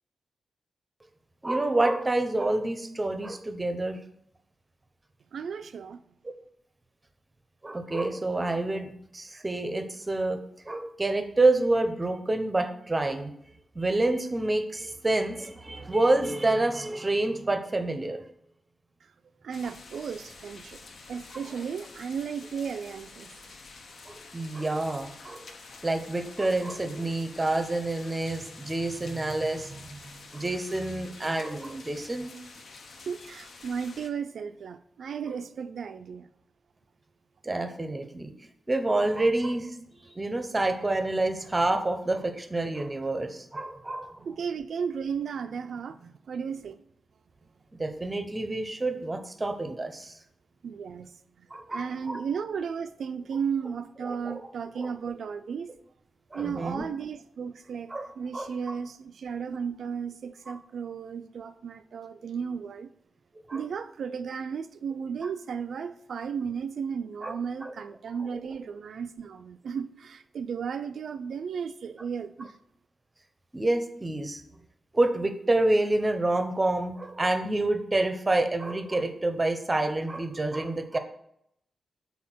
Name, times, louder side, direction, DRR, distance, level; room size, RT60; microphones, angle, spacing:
voice 1, 1.4-4.0 7.6-13.3 13.7-18.2 24.1-25.4 25.8-32.3 37.4-38.3 38.7-39.8 40.0-44.3 47.7-50.2 51.5-52.2 54.1-54.4 54.8-54.9 56.3-56.8 57.9-58.1 58.3-58.7 63.5-63.6 67.2-67.3 67.6-67.7 68.3-68.4 73.5-74.4 74.9-81.0, right 2 dB, 20° right, 0.7 m, -28 dB
voice 2, 5.3-6.0 19.0-19.1 19.4-20.8 21.1-23.3 33.1-36.3 44.2-46.8 50.6-55.7 56.3-62.9 63.5-72.6, right 6 dB, 75° right, 0.3 m, -34 dB
sound 1, 19.5-34.1, left 3 dB, 60° left, 0.8 m, -48 dB
6.3 x 4.1 x 5.9 m
wide cardioid pair, 135°, 0 cm